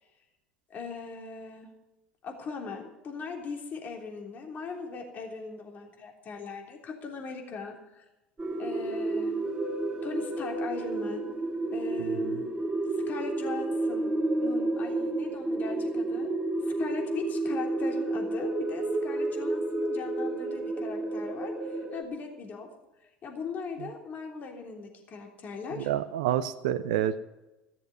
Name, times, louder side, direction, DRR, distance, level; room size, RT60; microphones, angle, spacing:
voice 1, 0.7-1.7 2.2-8.0 8.6-9.4 10.0-11.3 11.7-12.5 12.9-14.1 14.4-16.3 16.6-22.7 23.2-25.9, left 4 dB, 45° left, 2 dB, 3.3 m, -39 dB
sound 1, 8.4-22.0, right 2 dB, 20° right, 2.1 m, -31 dB
voice 2, 12.0-12.4 23.8-23.9 25.7-27.2, right 11 dB, 80° right, 12 dB, 0.7 m, -29 dB
15.0 x 7.2 x 9.4 m, 1.0 s
hypercardioid pair, 75°, 4 cm